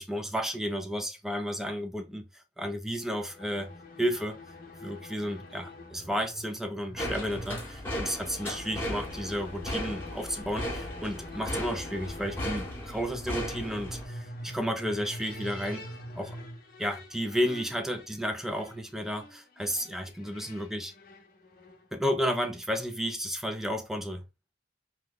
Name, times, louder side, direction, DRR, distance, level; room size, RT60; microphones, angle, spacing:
voice 1, 0.0-3.7 4.0-4.4 4.8-15.9 16.1-16.4 16.8-20.9 21.9-24.2, equal, ahead, 0.4 m, -32 dB
sound 1, 2.9-21.9, left 1 dB, 50° left, 0.7 m, -45 dB
sound 2, 7.0-14.1, equal, 15° left, 1.0 m, -36 dB
2.9 x 2.1 x 3.8 m
head